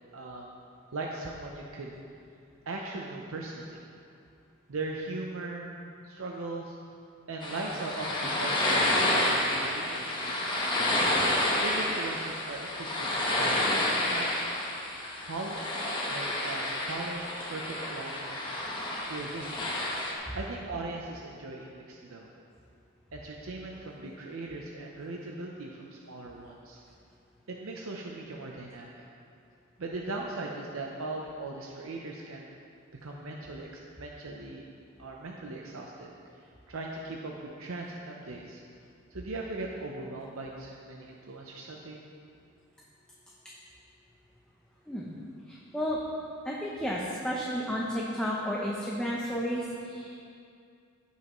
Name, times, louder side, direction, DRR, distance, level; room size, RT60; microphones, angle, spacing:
voice 1, 0.1-0.5 0.9-2.0 2.7-3.8 4.7-5.7 6.0-6.8 7.3-10.7 11.5-14.4 15.3-15.7 16.1-18.5 19.1-19.7 20.3-22.3 23.1-26.8 27.5-29.0 29.8-32.5 33.0-34.7 35.0-36.1 36.7-38.6 39.1-42.0, right 2 dB, 85° right, -1 dB, 0.7 m, -39 dB
sound 1, 7.4-20.1, left 1 dB, 25° left, 1.1 m, -29 dB
voice 2, 45.5-46.0 46.4-50.1, equal, 5° left, -4 dB, 0.7 m, -32 dB
16.0 x 5.6 x 3.1 m, 2.4 s
head